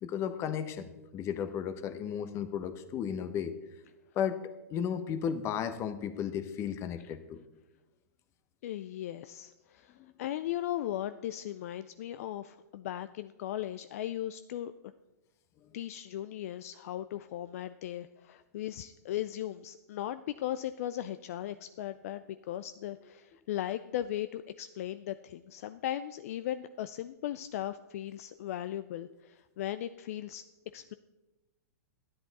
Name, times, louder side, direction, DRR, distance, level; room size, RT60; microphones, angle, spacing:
voice 1, 0.0-3.5 4.1-4.4 4.7-7.4 10.0-10.1, left 8 dB, 30° left, 11 dB, 0.9 m, -34 dB
voice 2, 8.6-14.7 15.7-30.4 30.7-30.9, left 12 dB, 60° left, 12 dB, 0.4 m, -37 dB
11.5 x 10.5 x 4.1 m, 1.1 s
hypercardioid pair, 125°, 9 cm